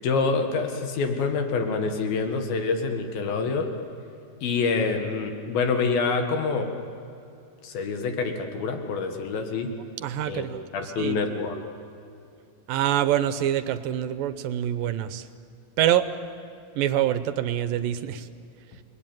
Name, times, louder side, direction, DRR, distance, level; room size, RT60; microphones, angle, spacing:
voice 1, 0.0-3.7 4.4-6.7 7.6-9.7 10.2-10.5 10.7-11.6, left 4 dB, 85° left, 4 dB, 3.6 m, -26 dB
voice 2, 10.0-10.6 11.0-11.2 12.7-15.3 15.8-16.1 16.8-18.3, right 11 dB, 80° right, 11 dB, 2.5 m, -25 dB
29.5 x 20.0 x 9.2 m, 2.6 s
omnidirectional pair, 4.1 m